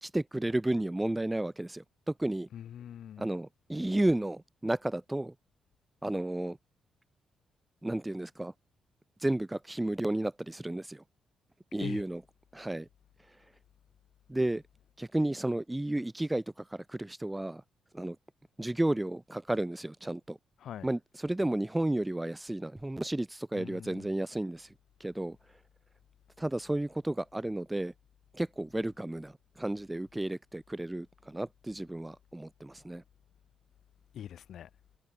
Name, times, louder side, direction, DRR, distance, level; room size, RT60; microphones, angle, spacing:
voice 1, 0.0-2.5 3.2-5.3 6.0-6.6 7.8-8.5 9.2-11.0 11.7-12.2 12.5-12.9 14.3-14.6 15.0-17.6 17.9-18.2 18.6-20.4 20.8-24.7 25.0-25.4 26.4-27.9 28.3-33.0, right 1 dB, 10° right, 0.3 m, -32 dB
voice 2, 2.5-3.3 11.8-12.0 20.6-20.9 23.5-24.1 34.1-34.7, left 10 dB, 70° left, 0.9 m, -43 dB
cardioid pair, 120°, 0 cm